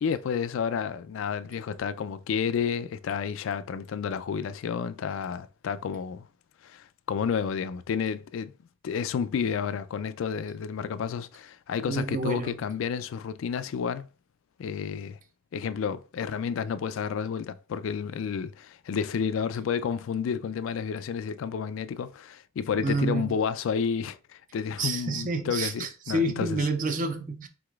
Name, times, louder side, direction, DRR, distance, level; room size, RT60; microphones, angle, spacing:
voice 1, 0.0-6.3 6.6-8.5 8.8-14.1 14.6-15.2 15.5-26.6, left 6 dB, 70° left, 0.3 m, -31 dB
voice 2, 11.9-12.6 22.8-23.4 24.8-27.5, right 2 dB, 40° right, 0.6 m, -29 dB
4.8 x 3.9 x 2.4 m
head